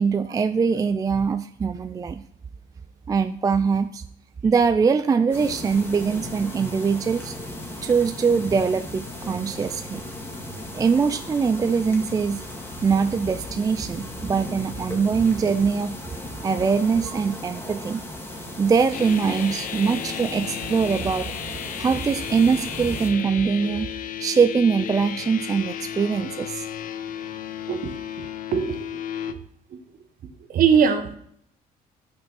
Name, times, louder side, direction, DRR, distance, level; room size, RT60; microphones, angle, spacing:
voice 1, 0.0-2.2 3.1-4.0 4.4-7.4 7.8-10.0 10.7-12.4 12.8-16.0 16.4-18.0 18.6-21.3 21.8-23.9 24.2-26.7, right 5 dB, 20° right, 11 dB, 0.4 m, -22 dB
sound 1, 5.3-23.1, left 1 dB, 15° left, 1.9 m, -36 dB
sound 2, 18.9-29.3, left 9 dB, 55° left, 0.8 m, -33 dB
voice 2, 27.7-28.8 30.5-31.2, right 7 dB, 55° right, 8 dB, 1.2 m, -21 dB
8.7 x 6.2 x 5.5 m, 0.68 s
cardioid pair, 110°, 17 cm